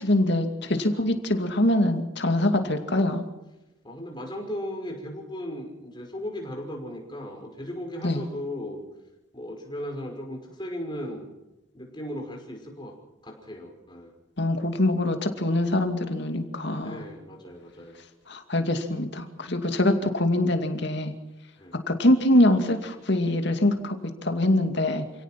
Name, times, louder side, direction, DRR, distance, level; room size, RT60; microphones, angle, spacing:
voice 1, 0.0-3.2 8.0-8.3 14.4-17.0 18.3-21.1 21.9-24.0 24.2-25.0, left 1 dB, 55° left, 6 dB, 2.5 m, -24 dB
voice 2, 3.8-8.8 9.3-11.3 11.7-12.9 13.2-14.1 16.8-18.0 21.6-21.7, left 1 dB, 20° left, 1 dB, 5.7 m, -36 dB
29.0 x 17.0 x 6.0 m, 1.0 s
head